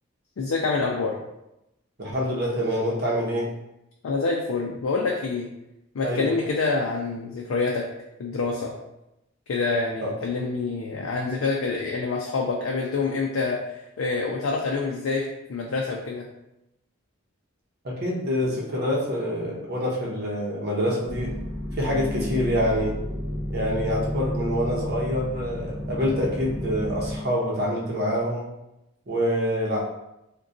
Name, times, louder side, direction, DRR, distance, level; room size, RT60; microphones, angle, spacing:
voice 1, 0.4-1.1 4.0-5.5 5.9-7.8 8.2-8.7 9.5-13.6 14.0-16.3, left 4 dB, 90° left, -1 dB, 0.4 m, -26 dB
voice 2, 2.0-3.5 6.0-6.3 10.0-10.1 17.8-21.4 21.8-22.9 23.5-28.5 29.1-29.8, equal, 50° right, -3 dB, 0.7 m, -26 dB
sound 1, 21.0-27.2, equal, 15° right, 1.4 m, -31 dB
3.7 x 2.2 x 2.5 m, 0.89 s
head